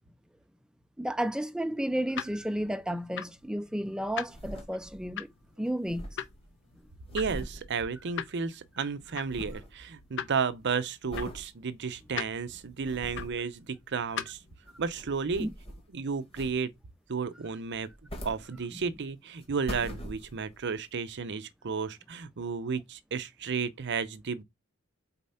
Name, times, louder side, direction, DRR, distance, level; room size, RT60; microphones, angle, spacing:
voice 1, 1.0-5.3 5.6-6.0 15.4-15.5, right 1 dB, 5° right, 0.4 m, -32 dB
sound 1, 1.6-14.6, left 8 dB, 60° left, 0.7 m, -43 dB
sound 2, 4.0-5.2 5.4-5.5 5.7-8.5 8.8-9.8 10.2-10.5 11.1-11.5 12.0-12.1 12.6-13.5 14.5-15.9 16.3-16.9 17.7-19.0 19.4-20.6 21.2-21.3, equal, 30° left, 1.7 m, -43 dB
voice 2, 7.1-14.4 14.8-15.5 15.9-16.7 17.1-17.9 18.2-24.4, right 5 dB, 55° right, 0.6 m, -33 dB
4.2 x 4.2 x 5.6 m
head